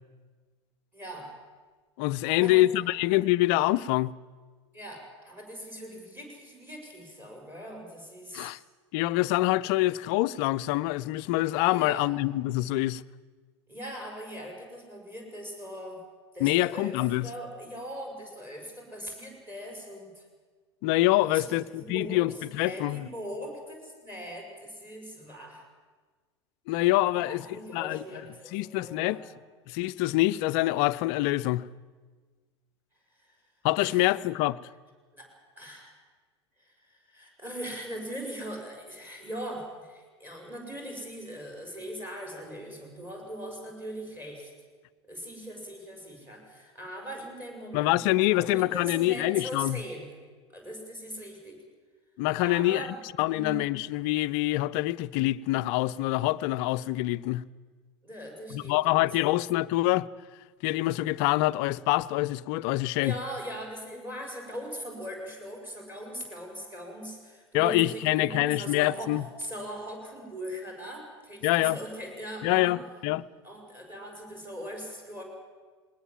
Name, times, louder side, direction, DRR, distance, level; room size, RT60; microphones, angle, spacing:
voice 1, 0.9-1.3 2.3-2.9 4.7-8.5 11.7-12.1 13.7-16.0 16.3-20.2 21.2-25.6 27.0-29.2 33.1-33.4 33.8-34.2 35.1-35.9 36.6-44.5 45.1-48.1 48.3-50.2 50.5-51.6 52.4-53.0 53.2-53.7 58.0-59.3 62.9-72.8 73.4-75.2, equal, 15° right, 6.1 m, -40 dB
voice 2, 2.0-4.1 8.3-8.6 8.9-13.0 16.4-17.3 20.8-23.1 26.7-28.0 28.5-29.2 29.7-31.6 33.6-34.6 47.7-49.8 52.2-57.4 58.5-60.1 60.6-63.1 67.5-69.2 71.4-71.8 72.4-73.2, left 17 dB, 45° left, 0.5 m, -25 dB
20.5 x 19.0 x 7.5 m
figure-of-eight pair, 80°, 15 cm